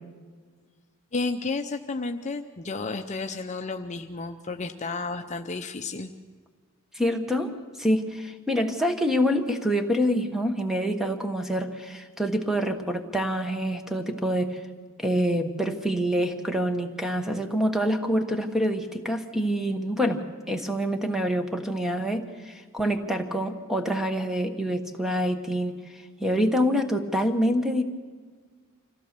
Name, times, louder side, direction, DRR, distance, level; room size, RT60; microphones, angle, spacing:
voice 1, 1.1-6.1, left 3 dB, 35° left, 6 dB, 0.7 m, -32 dB
voice 2, 6.9-14.6 15.0-25.8 26.2-27.8, equal, ahead, 5 dB, 1.3 m, -26 dB
25.5 x 16.0 x 6.8 m, 1.5 s
head